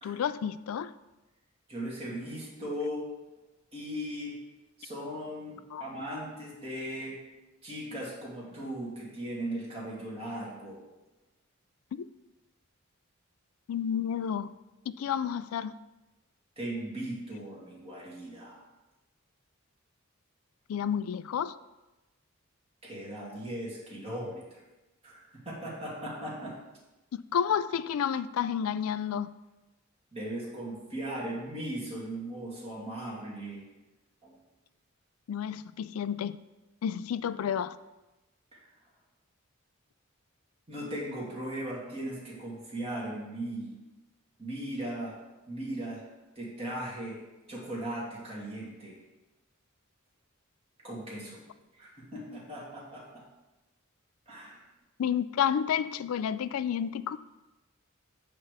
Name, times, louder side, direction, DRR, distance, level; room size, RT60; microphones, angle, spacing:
voice 1, 0.0-0.9 5.7-5.8 12.0-12.1 13.7-14.5 14.9-15.7 20.7-21.6 27.1-29.3 35.3-36.4 36.8-37.8 55.0-57.2, left 8 dB, 90° left, 15 dB, 0.3 m, -30 dB
voice 2, 1.7-3.0 3.7-4.3 4.8-7.2 7.6-10.8 16.6-18.6 22.8-24.6 25.0-26.5 30.1-33.6 34.2-34.4 38.5-38.6 40.7-43.7 44.4-45.1 45.5-46.0 46.4-47.2 47.5-49.0 50.8-51.4 51.7-53.2 54.3-54.6, right 1 dB, 30° right, -5 dB, 2.5 m, -38 dB
8.9 x 3.5 x 6.6 m, 1.1 s
head